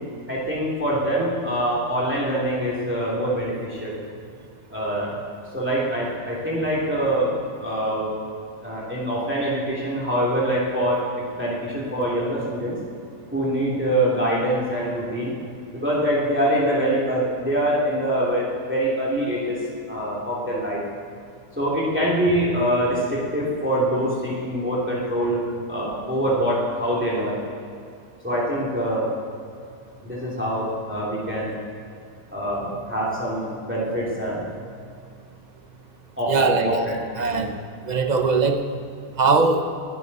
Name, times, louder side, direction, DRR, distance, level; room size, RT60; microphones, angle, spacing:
voice 1, 0.3-4.0 4.7-5.2 5.5-7.3 7.6-8.1 8.6-12.8 13.3-15.3 15.7-19.6 19.9-20.8 21.6-25.4 25.7-27.4 28.2-29.1 30.0-31.5 32.3-34.5 36.2-37.0 37.3-37.5, right 1 dB, 5° right, -6 dB, 2.9 m, -24 dB
voice 2, 36.3-36.8 37.2-37.6 37.9-38.6 39.2-39.7, right 4 dB, 40° right, 6 dB, 0.7 m, -20 dB
20.5 x 12.0 x 4.2 m, 2.4 s
omnidirectional pair, 1.7 m